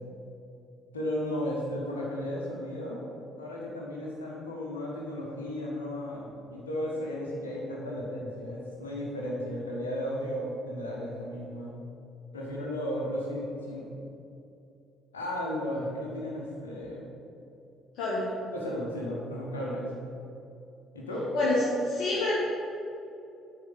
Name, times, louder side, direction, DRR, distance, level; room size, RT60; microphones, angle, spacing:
voice 1, 0.9-3.0 3.4-11.7 12.3-13.9 15.1-17.1 18.5-19.9 20.9-21.3, left 1 dB, 80° left, -4 dB, 1.6 m, -34 dB
voice 2, 17.9-18.3 21.3-22.3, left 2 dB, 55° left, -8 dB, 1.7 m, -27 dB
8.3 x 5.1 x 7.1 m, 2.7 s
figure-of-eight pair, 50°, 0 cm